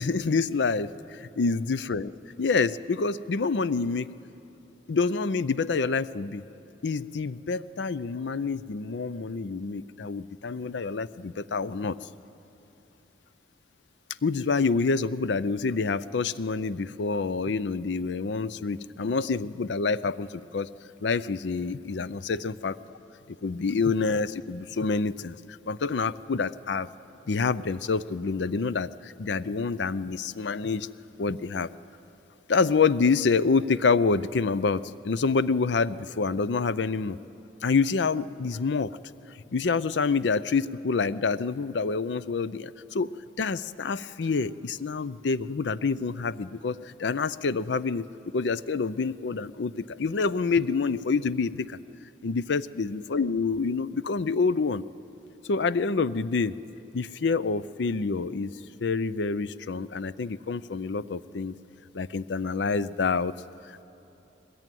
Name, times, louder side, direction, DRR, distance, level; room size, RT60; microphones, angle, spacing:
voice 1, 0.0-2.1 2.4-4.1 4.9-6.4 6.8-12.0 14.2-20.7 21.0-22.8 23.3-26.9 27.3-30.9 31.2-31.7 32.5-37.2 37.6-38.9 39.5-43.1 43.4-51.8 52.2-54.8 55.5-56.6 56.9-61.5 61.9-63.3 63.7-63.8, left 4 dB, 70° left, 16 dB, 0.5 m, -27 dB
21.0 x 20.0 x 9.2 m, 3.0 s
head